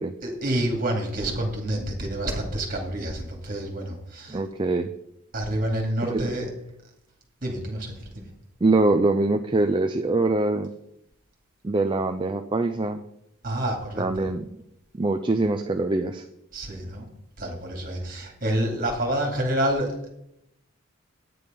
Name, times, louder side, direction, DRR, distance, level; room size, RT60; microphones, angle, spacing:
voice 1, 0.2-4.4 5.3-6.5 7.4-8.2 13.4-14.3 16.5-17.1 17.4-20.1, right 1 dB, 40° right, 1 dB, 2.5 m, -28 dB
voice 2, 4.3-4.9 6.1-6.4 8.6-10.7 11.6-13.0 14.0-14.5 14.9-16.2, right 2 dB, 20° right, 6 dB, 0.4 m, -23 dB
9.3 x 8.5 x 5.2 m, 0.77 s
head